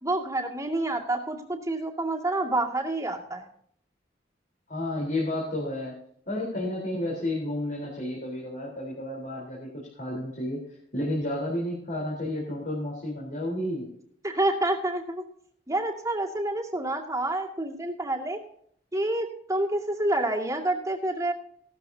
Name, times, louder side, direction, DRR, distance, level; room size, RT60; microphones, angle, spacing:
voice 1, 0.0-3.5 14.2-15.2 15.7-18.4 18.9-21.3, right 2 dB, 15° right, 0 dB, 2.2 m, -28 dB
voice 2, 4.7-5.9 6.3-10.6 10.9-13.9, left 1 dB, 45° left, -3 dB, 3.9 m, -31 dB
17.0 x 13.0 x 2.8 m, 0.64 s
head